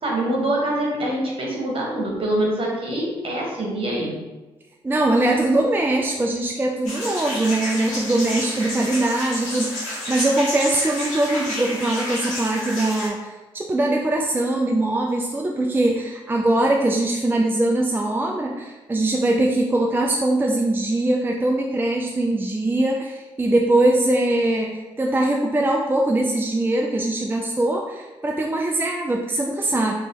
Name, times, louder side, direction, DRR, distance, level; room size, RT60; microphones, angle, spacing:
voice 1, 0.0-4.1, right 1 dB, 45° right, -2 dB, 1.3 m, -24 dB
voice 2, 4.8-29.9, right 1 dB, 15° right, 0 dB, 0.4 m, -22 dB
sound 1, 6.8-13.1, left 1 dB, 80° left, 1.0 m, -30 dB
3.1 x 2.7 x 3.5 m, 1.2 s
hypercardioid pair, 50°, 12 cm